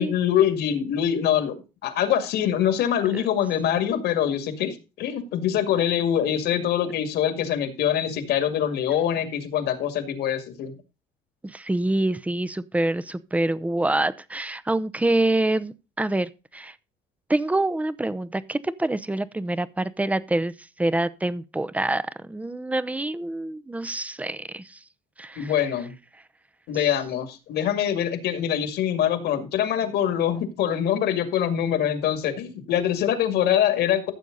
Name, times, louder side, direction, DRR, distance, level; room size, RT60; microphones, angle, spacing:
voice 1, 0.0-10.7 25.4-25.9 26.7-34.1, left 10 dB, 75° left, 2.3 m, -24 dB
voice 2, 11.4-16.7 17.3-20.5 20.8-24.8 25.2-25.5, right 2 dB, 10° right, 0.7 m, -26 dB
14.5 x 7.2 x 4.0 m
cardioid pair, 110°, 17 cm